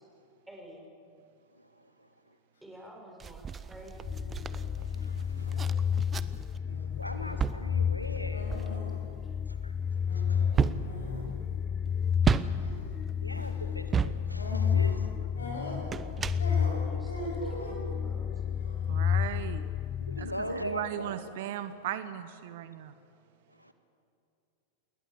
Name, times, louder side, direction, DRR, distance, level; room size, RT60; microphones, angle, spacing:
voice 1, 0.5-0.9 2.6-4.2 15.2-15.3 16.7-18.6, equal, 5° right, 0 dB, 7.4 m, -50 dB
sound 1, 3.2-6.6 7.0-15.1 15.7-17.0 17.6-17.7, right 6 dB, 20° right, 0.9 m, -34 dB
sound 2, 3.6-3.8 4.2-4.7 5.3-5.7 6.7-7.1 8.3-9.0 9.3-9.4 10.1-11.3 12.5-12.9 13.3-13.5 14.3-15.0 15.4-16.1 16.4-17.9 18.4-18.9, left 1 dB, 70° left, 7.6 m, -42 dB
sound 3, 4.0-20.9, left 7 dB, 25° left, 0.6 m, -31 dB
voice 2, 4.8-5.7 6.2-6.3 6.9-8.5 9.5-9.7 10.3-10.8 11.9-12.0 13.2-15.1 16.8-16.9 20.0-21.2 23.6-23.7, equal, 90° left, 8 dB, 1.8 m, -40 dB
voice 3, 18.9-19.6 20.2-22.9, right 12 dB, 55° right, 12 dB, 1.1 m, -37 dB
29.0 x 21.0 x 8.0 m, 2.5 s
figure-of-eight pair, 90°, 0 cm